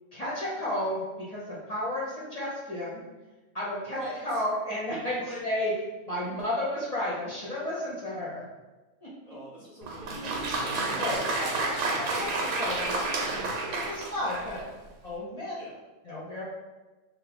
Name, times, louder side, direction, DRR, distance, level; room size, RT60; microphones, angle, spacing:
voice 1, 0.1-3.0 3.5-4.0 4.2-5.7 6.0-8.4 10.6-11.6 12.0-14.6 15.0-15.6 16.1-16.4, left 1 dB, 40° left, -7 dB, 0.7 m, -33 dB
voice 2, 3.8-4.4 5.2-5.5 9.2-11.8 15.5-15.8, right 1 dB, 40° right, -7 dB, 0.7 m, -44 dB
Applause, 9.8-14.7, right 3 dB, 75° right, 1.0 m, -30 dB
2.8 x 2.1 x 4.1 m, 1.2 s
omnidirectional pair, 1.3 m